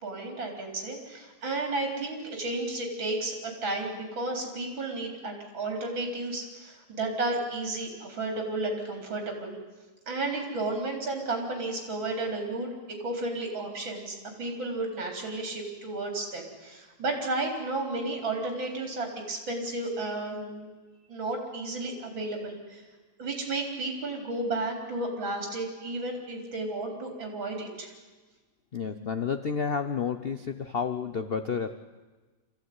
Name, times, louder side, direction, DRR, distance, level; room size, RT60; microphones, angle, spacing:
voice 1, 0.0-9.6 10.1-12.7 13.0-20.7 21.1-22.8 23.2-27.9, right 2 dB, 80° right, 2 dB, 4.7 m, -33 dB
voice 2, 28.7-31.7, left 6 dB, 50° left, 9 dB, 0.7 m, -30 dB
25.5 x 15.0 x 9.5 m, 1.3 s
omnidirectional pair, 2.1 m